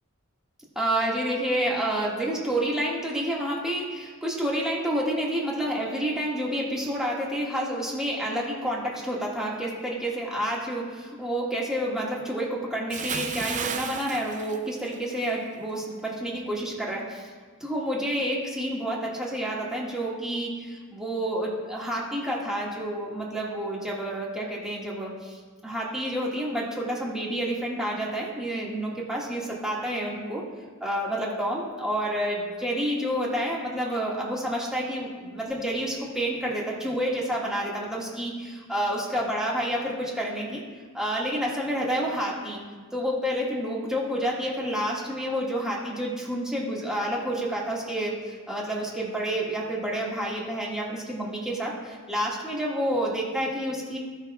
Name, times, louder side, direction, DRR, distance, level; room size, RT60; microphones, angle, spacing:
voice 1, 0.7-17.2 17.6-30.4 30.8-40.6 40.9-42.6 42.9-54.0, equal, 5° right, -5 dB, 1.6 m, -29 dB
Bathtub (filling or washing) / Splash splatter, 12.9-15.3 15.6-15.9, right 6 dB, 35° right, 0.5 m, -33 dB
17.0 x 5.9 x 2.2 m, 1.5 s
head